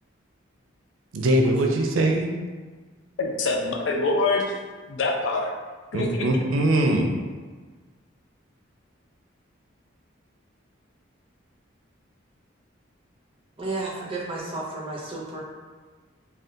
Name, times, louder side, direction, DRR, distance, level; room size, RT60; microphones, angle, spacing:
voice 1, 1.1-2.3 5.9-7.1, right 1 dB, 85° right, 2 dB, 0.4 m, -21 dB
voice 2, 3.2-4.6 4.9-5.5 5.9-6.3, left 3 dB, 70° left, 1 dB, 0.4 m, -25 dB
voice 3, 13.6-15.4, right 2 dB, 25° right, -4 dB, 0.6 m, -32 dB
3.5 x 2.3 x 2.6 m, 1.4 s
head